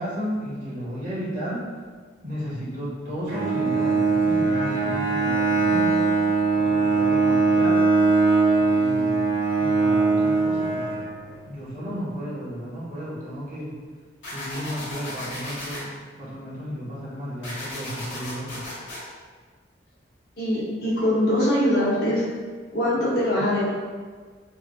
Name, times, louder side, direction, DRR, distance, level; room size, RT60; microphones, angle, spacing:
voice 1, 0.0-1.6 2.2-6.1 6.5-7.9 8.6-9.2 9.6-10.9 11.5-13.7 14.3-15.9 16.2-18.7, equal, 40° right, -10 dB, 1.5 m, -33 dB
Bowed string instrument, 3.3-11.5, right 4 dB, 75° right, 1.5 m, -21 dB
sound 1, 14.2-15.8 17.4-19.0, left 1 dB, 75° left, 1.4 m, -35 dB
voice 2, 20.4-22.2 22.7-23.7, left 1 dB, 55° left, -7 dB, 0.9 m, -22 dB
3.6 x 3.2 x 2.3 m, 1.5 s
head